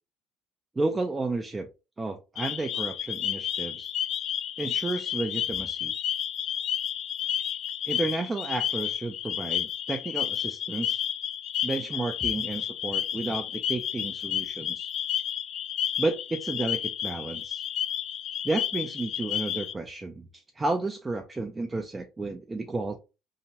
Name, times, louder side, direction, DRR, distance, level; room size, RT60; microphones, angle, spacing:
voice 1, 0.8-1.7 2.0-3.9 4.6-5.9 7.9-11.0 11.6-14.9 16.0-17.6 18.4-23.0, right 2 dB, 20° right, 4 dB, 0.4 m, -32 dB
sound 1, 2.3-19.7, left 10 dB, 60° left, 0.3 m, -31 dB
2.8 x 2.1 x 2.8 m, 0.29 s
cardioid pair, 100°, 0 cm